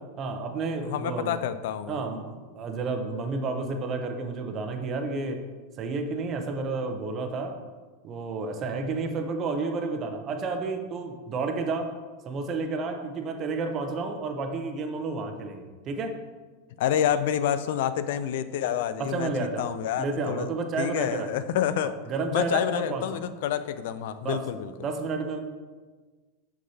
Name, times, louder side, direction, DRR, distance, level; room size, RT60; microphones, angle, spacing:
voice 1, 0.2-1.4 1.9-5.4 5.8-7.6 8.0-11.9 12.2-16.1 19.0-19.7 20.0-21.3 21.8-23.0 24.2-24.4 24.8-25.4, right 3 dB, 35° right, 5 dB, 0.7 m, -31 dB
voice 2, 0.8-2.0 16.8-20.5 20.8-22.0 22.3-24.7, left 10 dB, 70° left, 13 dB, 0.4 m, -28 dB
6.2 x 5.9 x 2.8 m, 1.4 s
supercardioid pair, 120°, 0 cm